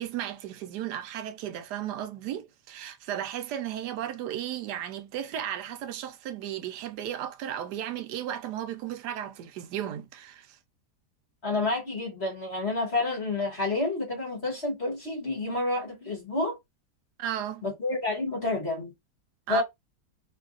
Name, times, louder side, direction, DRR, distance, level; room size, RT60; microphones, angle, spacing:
voice 1, 0.0-10.6 17.2-17.6 19.5-19.6, right 10 dB, 80° right, 1.2 m, -35 dB
voice 2, 11.4-16.5 17.6-18.9 19.5-19.6, left 2 dB, 40° left, 1.5 m, -29 dB
3.1 x 2.4 x 3.8 m
omnidirectional pair, 1.8 m